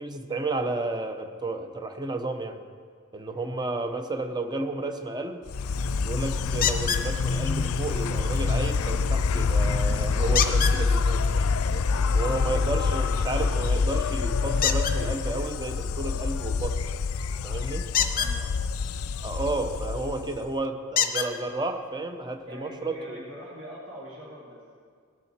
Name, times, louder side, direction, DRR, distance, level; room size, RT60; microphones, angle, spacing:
voice 1, 0.0-2.6 3.1-5.4 6.0-11.9 12.1-16.8 17.4-17.9 19.2-23.2, right 2 dB, 20° right, 6 dB, 0.8 m, -32 dB
Insect, 5.5-20.6, left 4 dB, 85° left, 0.4 m, -26 dB
sound 1, 6.6-7.1 10.3-10.8 14.6-15.0 17.9-18.3 20.0-20.1 20.9-21.3 22.3-22.4 22.9-23.0, left 8 dB, 40° left, 0.7 m, -25 dB
voice 2, 17.9-18.5 22.5-24.6, equal, 75° right, -8 dB, 2.7 m, -44 dB
18.5 x 7.0 x 4.5 m, 2.1 s
head